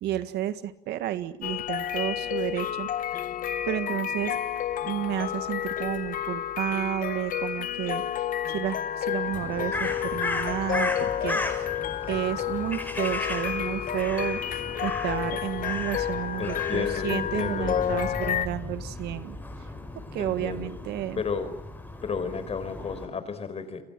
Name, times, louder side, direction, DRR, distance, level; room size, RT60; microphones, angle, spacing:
voice 1, 0.0-2.9 3.7-4.4 4.8-11.4 12.1-19.4 20.0-21.2, right 12 dB, 75° right, 11 dB, 1.9 m, -31 dB
sound 1, 1.4-18.5, left 10 dB, 55° left, 1.8 m, -30 dB
Crow, 9.3-23.1, left 2 dB, 10° left, 6.5 m, -36 dB
voice 2, 16.4-18.1 20.2-20.7 21.2-21.5 22.0-23.8, left 5 dB, 35° left, 11 dB, 4.9 m, -32 dB
29.0 x 23.0 x 7.7 m, 0.76 s
cardioid pair, 110°, 17 cm